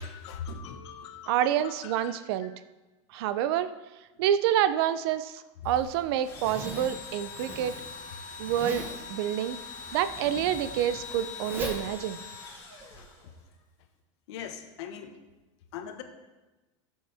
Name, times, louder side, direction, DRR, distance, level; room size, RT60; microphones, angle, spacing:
voice 1, 0.0-2.2 13.0-13.1 14.3-15.2 15.7-16.0, left 6 dB, 60° left, 5 dB, 1.3 m, -41 dB
voice 2, 1.3-2.5 3.1-3.7 4.2-5.3 5.6-7.7 8.4-8.8 9.1-9.6 9.9-12.2, right 11 dB, 50° right, 12 dB, 0.5 m, -27 dB
Zipper (clothing), 5.6-13.0, right 1 dB, 10° right, 1.1 m, -42 dB
Engine / Drill, 6.2-13.5, left 6 dB, 20° left, 3.9 m, -43 dB
15.5 x 7.7 x 3.5 m, 1.1 s
supercardioid pair, 165°, 16 cm